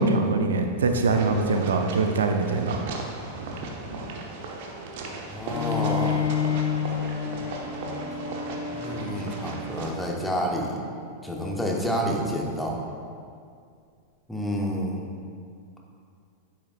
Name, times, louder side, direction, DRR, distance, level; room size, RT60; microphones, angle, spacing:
voice 1, 0.0-2.8, right 3 dB, 65° right, 5 dB, 0.5 m, -23 dB
sound 1, 1.1-9.9, right 3 dB, 50° right, 0.9 m, -37 dB
voice 2, 5.3-6.6 8.7-10.8 11.2-12.9 14.3-15.1, equal, 5° left, -1 dB, 1.1 m, -29 dB
Bowed string instrument, 5.5-11.1, left 7 dB, 60° left, 0.6 m, -30 dB
9.6 x 7.3 x 2.4 m, 2.3 s
figure-of-eight pair, 90°, 0 cm